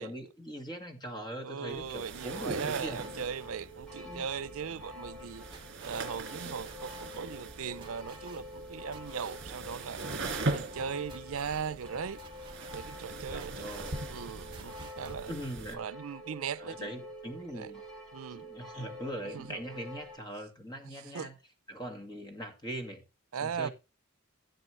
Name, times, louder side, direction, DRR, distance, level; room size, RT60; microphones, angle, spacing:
voice 1, 0.0-3.1 4.0-4.3 6.4-6.5 9.5-9.6 13.3-14.1 15.3-15.8 16.6-17.8 18.3-21.4 21.7-23.0 23.4-23.7, equal, 20° left, 2.0 m, -41 dB
voice 2, 1.4-5.4 5.8-10.0 10.5-12.2 12.7-15.3 15.8-16.9 17.5-17.7 18.1-18.5 19.3-19.6 20.9-21.3 23.3-23.7, right 6 dB, 75° right, 0.5 m, -38 dB
sound 1, 1.7-15.8, right 2 dB, 55° right, 2.3 m, -41 dB
sound 2, 2.2-20.2, equal, ahead, 3.6 m, -47 dB
sound 3, 4.8-15.2, right 4 dB, 20° right, 2.0 m, -55 dB
15.0 x 7.6 x 3.2 m
head